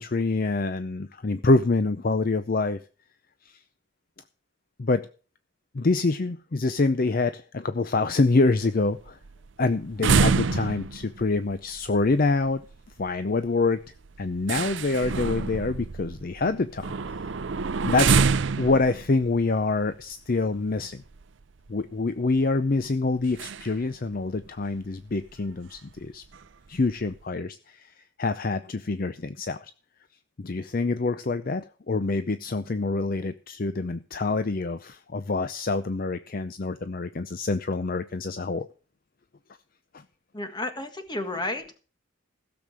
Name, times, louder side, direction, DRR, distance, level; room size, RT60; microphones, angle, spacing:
voice 1, 0.0-2.8 3.5-3.6 4.8-5.1 5.7-9.2 9.6-12.6 13.0-13.8 14.2-17.2 17.8-18.2 18.6-21.0 21.7-26.2 26.7-27.9 28.2-29.7 30.4-38.7 39.9-40.0, left 3 dB, 40° left, 12 dB, 0.5 m, -26 dB
sound 1, 8.6-21.2 21.7-21.8 22.0-22.3 23.3-23.9 24.1-24.2 24.6-24.7 25.3-25.4 25.7-26.0 26.3-27.1, right 5 dB, 60° right, 0.5 m, -27 dB
voice 2, 40.3-41.8, left 2 dB, 20° left, 8 dB, 1.5 m, -32 dB
16.0 x 7.1 x 6.2 m, 0.38 s
head